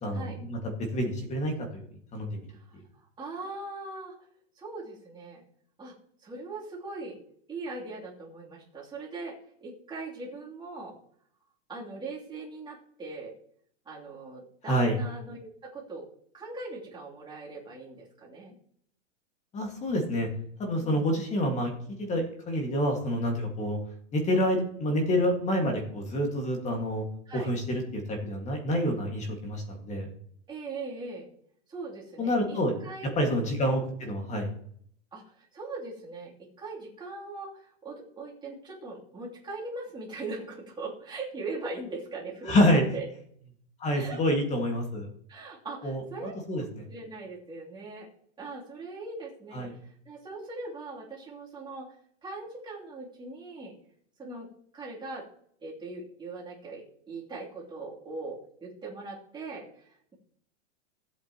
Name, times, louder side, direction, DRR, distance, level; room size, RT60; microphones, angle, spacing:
voice 1, 0.0-1.8 2.1-2.5 2.7-2.8 14.7-15.0 19.5-20.3 20.6-21.7 22.0-23.8 24.1-27.1 27.3-30.1 32.2-32.7 33.2-34.5 42.5-42.9 43.8-45.1 45.8-46.9 49.5-49.7, equal, 20° left, 3 dB, 1.9 m, -28 dB
voice 2, 2.5-4.1 4.5-5.4 5.8-5.9 6.2-7.2 7.5-10.9 11.7-13.3 13.8-16.0 16.3-18.5 20.8-21.1 27.3-27.5 30.5-31.3 31.7-33.5 35.1-43.0 43.9-44.2 45.3-46.3 46.9-48.1 48.4-51.9 52.2-53.7 54.2-54.5 54.7-55.2 55.6-60.1, right 3 dB, 10° right, -5 dB, 3.1 m, -40 dB
15.5 x 8.4 x 3.0 m, 0.64 s
hypercardioid pair, 145°, 36 cm